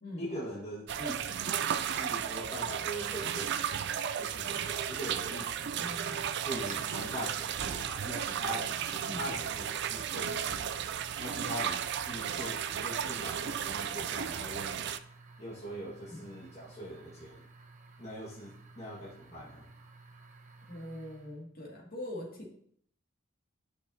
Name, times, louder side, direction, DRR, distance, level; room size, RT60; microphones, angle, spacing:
voice 1, 0.2-3.6 4.2-5.8 6.4-10.7 11.2-14.9 15.4-17.5 18.0-19.7, equal, 30° left, -6 dB, 1.6 m, -42 dB
sound 1, 0.9-15.0, right 8 dB, 55° right, 0.4 m, -34 dB
sound 2, 1.9-21.4, right 3 dB, 40° right, 1.0 m, -54 dB
voice 2, 5.8-6.3 9.1-9.3 16.1-16.2 20.7-22.5, left 1 dB, 45° left, -2 dB, 2.3 m, -42 dB
12.0 x 6.0 x 2.8 m, 0.64 s
head